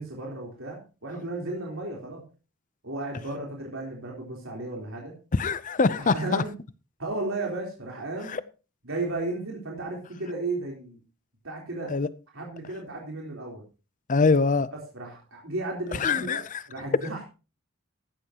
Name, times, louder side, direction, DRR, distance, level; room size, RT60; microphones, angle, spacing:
voice 1, 0.0-2.2 2.8-5.1 5.9-6.5 7.0-8.4 8.8-11.0 11.4-11.9 12.3-13.6 14.7-17.2, right 2 dB, 75° right, 3.7 m, -34 dB
voice 2, 5.3-6.4 8.3-8.4 11.9-12.1 14.1-14.7 16.0-16.6, left 4 dB, 40° left, 0.6 m, -23 dB
15.5 x 11.5 x 2.9 m
head